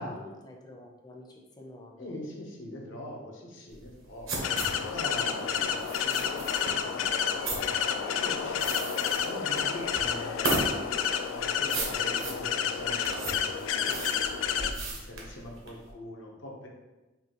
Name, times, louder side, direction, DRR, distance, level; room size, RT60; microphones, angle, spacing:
voice 1, 0.0-2.2 5.3-8.2, left 1 dB, 20° left, 0 dB, 0.5 m, -49 dB
voice 2, 2.0-4.5 4.8-5.8 8.1-10.5 11.3-16.7, left 1 dB, 70° left, -1 dB, 0.8 m, -42 dB
sound 1, 3.7-15.9, right 3 dB, 90° right, 1.0 m, -36 dB
sound 2, 4.4-14.7, left 7 dB, 90° left, 0.3 m, -30 dB
5.4 x 2.3 x 2.9 m, 1.1 s
head